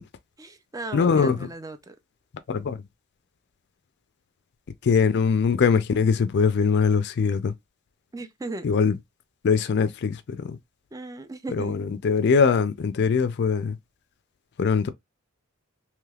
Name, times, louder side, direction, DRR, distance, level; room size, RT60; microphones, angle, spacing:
voice 1, 0.4-2.0 8.1-8.7 10.9-11.7, right 2 dB, 15° right, 0.4 m, -37 dB
voice 2, 0.9-1.5 2.5-2.8 4.8-7.5 8.6-8.9 9.4-10.6 11.5-13.8 14.6-14.9, left 5 dB, 50° left, 0.4 m, -22 dB
3.3 x 3.0 x 2.3 m
head